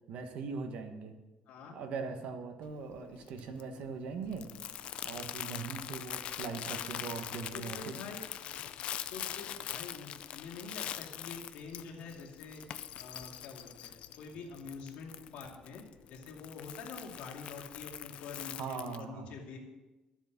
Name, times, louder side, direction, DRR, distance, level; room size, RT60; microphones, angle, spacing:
voice 1, 0.1-1.2 1.7-4.5 5.0-8.0 18.5-19.4, right 5 dB, 65° right, 6 dB, 1.4 m, -40 dB
voice 2, 1.5-1.8 7.5-8.2 9.1-12.6 13.0-15.8 16.1-19.6, left 5 dB, 75° left, 0 dB, 2.5 m, -46 dB
Crumpling crinkling, 2.6-19.0, left 11 dB, 55° left, 0.4 m, -43 dB
12.5 x 7.3 x 5.9 m, 1.1 s
cardioid pair, 165°, 2 cm